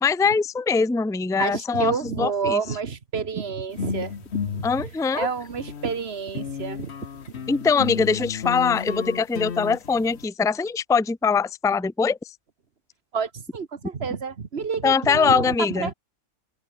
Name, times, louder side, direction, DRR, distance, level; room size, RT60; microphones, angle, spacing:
voice 1, 0.0-2.6 4.6-5.3 7.5-12.2 14.8-15.9, left 5 dB, 5° left, 0.3 m, -22 dB
voice 2, 1.4-6.9 13.1-15.9, right 5 dB, 45° right, 1.7 m, -29 dB
sound 1, 3.7-6.0 6.3-10.3, left 6 dB, 50° left, 1.4 m, -33 dB
omnidirectional pair, 1.5 m